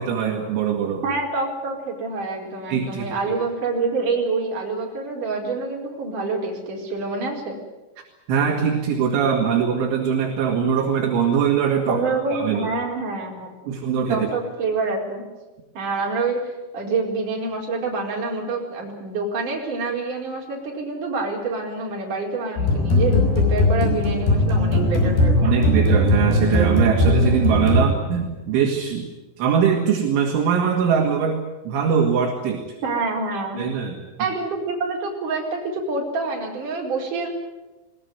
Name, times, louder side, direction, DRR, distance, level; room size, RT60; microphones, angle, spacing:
voice 1, 0.0-1.0 2.7-3.1 8.3-12.0 12.3-12.7 13.7-14.3 25.4-29.1 29.4-32.6 33.6-34.0, right 7 dB, 70° right, 1 dB, 4.4 m, -22 dB
voice 2, 1.0-7.6 11.9-13.5 14.1-15.2 15.7-16.4 16.7-25.5 32.8-33.6 34.2-37.3, right 3 dB, 40° right, -1 dB, 5.6 m, -27 dB
sound 1, 22.6-28.3, left 1 dB, 50° left, 7.4 m, -19 dB
21.0 x 20.5 x 9.6 m, 1.1 s
omnidirectional pair, 6.0 m